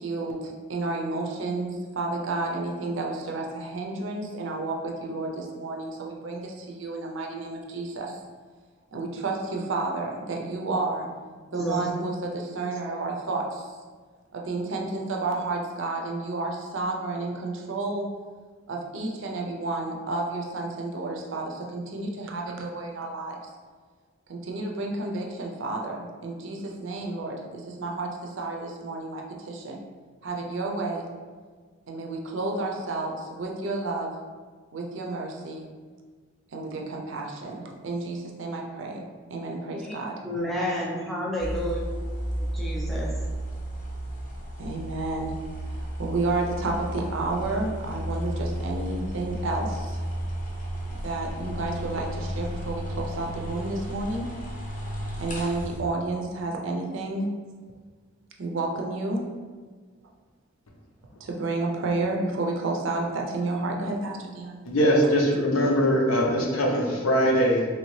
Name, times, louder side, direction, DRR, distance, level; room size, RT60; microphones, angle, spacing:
voice 1, 0.0-8.2 8.9-11.1 11.5-13.7 14.3-18.1 18.7-23.4 24.3-29.8 30.2-31.1 31.9-34.1 34.7-35.7 36.5-39.0 39.3-40.2 44.6-45.3 45.7-50.0 51.0-54.3 55.2-57.3 58.4-59.3 61.2-64.6, right 2 dB, 65° right, 0 dB, 0.5 m, -31 dB
voice 2, 11.6-11.9 39.8-40.0 40.2-41.8 42.3-43.1, equal, ahead, -4 dB, 0.4 m, -30 dB
sound 1, 41.4-55.8, equal, 40° left, 0.6 m, -33 dB
voice 3, 64.6-67.7, equal, 90° left, 0 dB, 0.6 m, -22 dB
3.1 x 2.7 x 3.1 m, 1.5 s
head